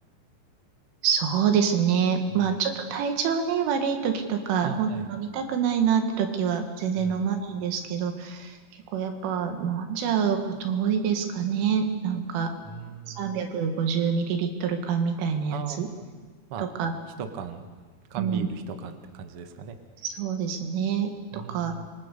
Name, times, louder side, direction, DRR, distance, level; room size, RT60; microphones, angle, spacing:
voice 1, 1.0-8.6 8.9-12.5 13.1-15.9 16.6-16.9 18.2-18.5 20.0-21.7, right 7 dB, 85° right, 5 dB, 4.5 m, -26 dB
voice 2, 4.6-5.1 7.0-7.2 12.6-13.4 15.5-16.1 16.5-16.7 17.2-17.7 18.1-19.7 21.3-21.8, right 6 dB, 65° right, 6 dB, 1.4 m, -37 dB
27.0 x 23.5 x 6.8 m, 1.4 s
omnidirectional pair, 5.5 m